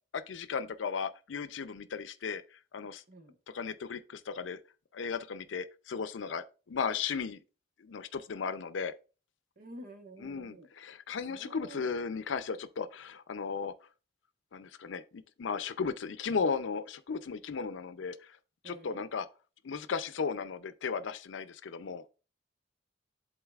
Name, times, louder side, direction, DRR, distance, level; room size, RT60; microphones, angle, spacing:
voice 1, 0.1-3.0 3.5-4.6 4.9-7.4 7.8-8.9 10.2-13.7 14.5-18.4 18.6-19.3 19.6-22.0, left 5 dB, 85° left, 0.5 m, -36 dB
voice 2, 9.6-10.7 11.3-11.9 18.6-19.0, right 1 dB, 50° right, 1.1 m, -49 dB
11.0 x 3.9 x 2.4 m
head